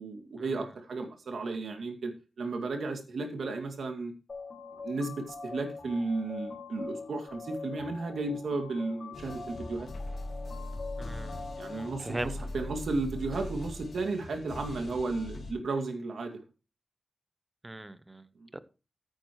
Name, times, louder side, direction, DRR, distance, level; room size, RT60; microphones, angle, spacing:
voice 1, 0.0-2.1 2.4-4.1 4.8-9.9 11.6-16.4 18.4-18.5, right 3 dB, 85° right, 4 dB, 2.3 m, -34 dB
sound 1, 4.3-12.3, left 4 dB, 45° left, 3.9 m, -43 dB
sound 2, 9.1-15.5, left 2 dB, 75° left, 2.2 m, -40 dB
voice 2, 11.0-11.4 11.7-12.3 17.6-18.3 18.5-18.6, right 1 dB, 15° right, 14 dB, 0.7 m, -39 dB
14.0 x 8.8 x 3.1 m, 0.32 s
wide cardioid pair, 160°, 0 cm